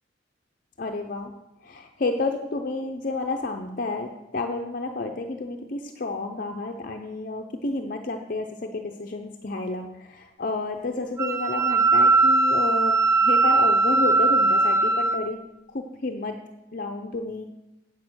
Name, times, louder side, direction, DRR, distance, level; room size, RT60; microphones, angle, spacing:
voice 1, 0.8-1.3 1.6-15.4 15.7-16.4 16.7-17.5, left 2 dB, 50° left, 4 dB, 0.7 m, -30 dB
Wind instrument woodwind instrument, 11.2-15.2, right 3 dB, 15° right, 0.8 m, -20 dB
8.5 x 8.1 x 6.2 m, 0.93 s
head